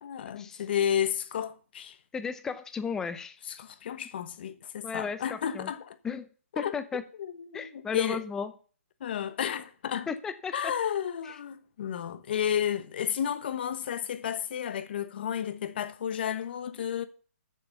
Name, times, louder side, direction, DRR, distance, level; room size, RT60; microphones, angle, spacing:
voice 1, 0.0-2.0 3.5-6.0 6.6-6.7 7.2-8.2 9.0-10.1 10.5-17.0, left 9 dB, 45° left, 1.0 m, -32 dB
voice 2, 2.1-3.4 4.8-5.7 6.0-6.3 6.6-7.0 7.5-8.5 10.1-10.7 11.2-11.4, left 6 dB, 5° left, 0.5 m, -34 dB
7.3 x 6.8 x 6.8 m
hypercardioid pair, 160°, 8 cm